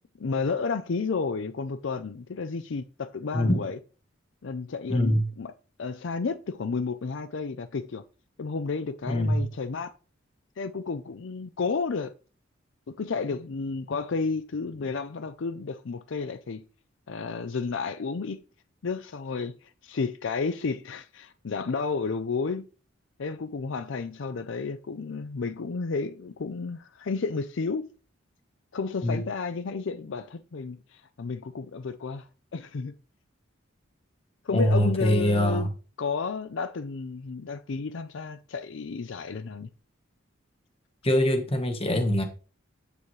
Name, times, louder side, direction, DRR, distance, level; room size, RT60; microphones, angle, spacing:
voice 1, 0.2-3.8 4.4-5.5 5.8-8.0 8.4-9.9 10.6-12.1 13.0-16.6 17.1-18.4 18.8-22.7 23.2-27.9 28.7-32.9 34.4-35.7 36.0-39.7, left 4 dB, 65° left, 0.5 m, -32 dB
voice 2, 4.9-5.2 9.1-9.4 29.0-29.2 34.5-35.7 41.0-42.2, equal, 30° left, 1.3 m, -23 dB
8.6 x 6.9 x 3.2 m
head